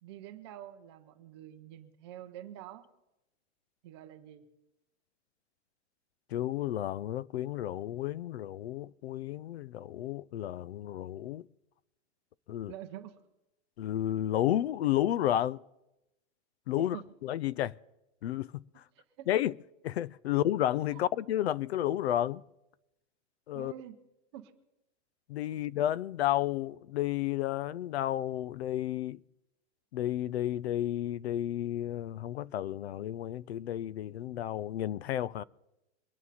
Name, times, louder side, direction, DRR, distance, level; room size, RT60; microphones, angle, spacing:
voice 1, 0.0-2.9 3.8-4.4 12.7-13.2 16.8-17.1 17.3-17.5 18.9-19.3 20.9-21.0 23.5-24.0 24.3-24.5 25.5-25.7, right 12 dB, 25° right, 0.7 m, -47 dB
voice 2, 6.3-11.4 12.5-12.7 13.8-15.6 16.7-17.0 17.2-17.8 18.2-18.6 19.3-19.5 19.8-22.4 23.5-23.7 25.3-29.2 29.9-35.4, left 12 dB, 65° left, 0.5 m, -31 dB
23.5 x 9.5 x 4.2 m
supercardioid pair, 180°, 34 cm